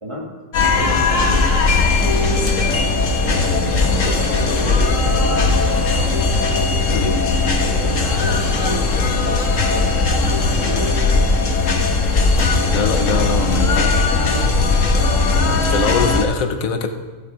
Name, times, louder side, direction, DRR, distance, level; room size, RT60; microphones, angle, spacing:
voice 1, 0.0-1.5 2.2-2.8 3.2-6.1 6.8-7.1 7.6-10.0 10.6-11.2 12.6-13.3 13.6-14.5 15.4-15.7 16.1-16.2, equal, 20° right, -2 dB, 2.1 m, -31 dB
sound 1, 0.5-16.2, left 3 dB, 70° left, 1.5 m, -18 dB
voice 2, 12.7-14.0 15.7-16.9, left 5 dB, 90° left, 7 dB, 1.4 m, -22 dB
14.5 x 7.8 x 4.8 m, 1.3 s
omnidirectional pair, 1.4 m